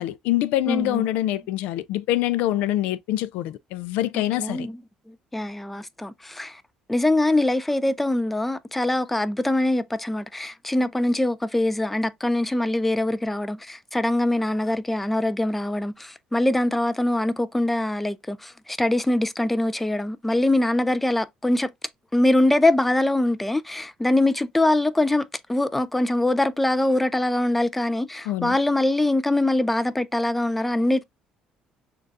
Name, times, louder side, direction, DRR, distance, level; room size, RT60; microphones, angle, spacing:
voice 1, 0.0-4.7 28.3-28.6, left 14 dB, 90° left, 0.4 m, -25 dB
voice 2, 0.7-1.0 4.1-4.8 5.1-6.6 6.9-21.7 22.1-31.0, left 1 dB, 5° left, 0.3 m, -23 dB
6.4 x 2.3 x 2.5 m
cardioid pair, 130°, 2 cm